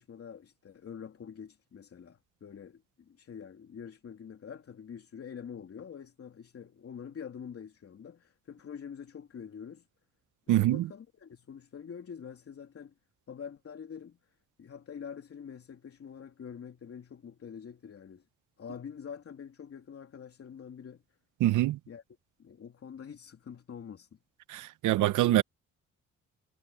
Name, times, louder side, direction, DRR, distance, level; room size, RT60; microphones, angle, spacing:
voice 1, 0.0-9.9 10.5-12.9 13.3-14.2 14.6-18.3 18.6-21.0 21.9-22.0 22.4-24.2, left 7 dB, 50° left, 3.2 m, -45 dB
voice 2, 10.5-10.9 21.4-21.8 24.5-25.4, right 15 dB, 80° right, 0.8 m, -25 dB
cardioid pair, 90°, 30 cm